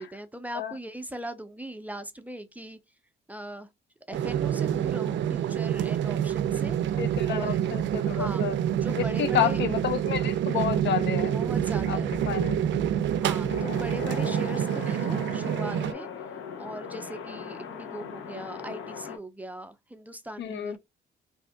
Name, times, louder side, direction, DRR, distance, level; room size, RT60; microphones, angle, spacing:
voice 1, 0.0-2.8 3.3-3.7 4.1-6.8 7.2-7.6 8.0-8.4 8.7-9.6 11.3-12.1 13.2-16.1 16.6-20.8, right 1 dB, 10° right, 0.5 m, -39 dB
sound 1, 4.1-15.9, right 10 dB, 65° right, 0.4 m, -27 dB
voice 2, 7.0-8.6 8.9-11.3 11.9-12.0 12.3-12.6 13.4-13.8 20.4-20.8, left 9 dB, 65° left, 0.5 m, -30 dB
sound 2, 10.0-13.8, left 1 dB, 30° left, 1.1 m, -44 dB
sound 3, 13.5-19.2, left 7 dB, 80° left, 1.0 m, -39 dB
2.7 x 2.4 x 3.5 m
cardioid pair, 90°, 20 cm